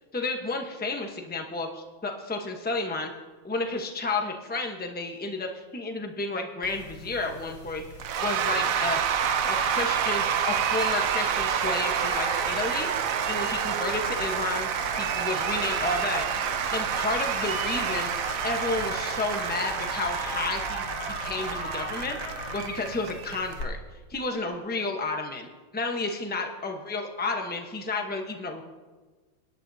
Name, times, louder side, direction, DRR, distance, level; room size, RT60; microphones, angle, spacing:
voice 1, 0.1-3.1 3.4-7.8 8.2-9.2 9.5-12.9 13.3-14.7 15.0-16.2 16.7-18.1 18.4-22.2 22.5-23.8 24.1-28.6, left 3 dB, 15° left, 3 dB, 0.4 m, -31 dB
sound 1, 6.6-23.6, left 2 dB, 85° left, 3.2 m, -38 dB
Cheering / Applause / Crowd, 8.0-23.6, right 8 dB, 75° right, 0.7 m, -28 dB
21.5 x 10.5 x 2.7 m, 1.3 s
omnidirectional pair, 2.2 m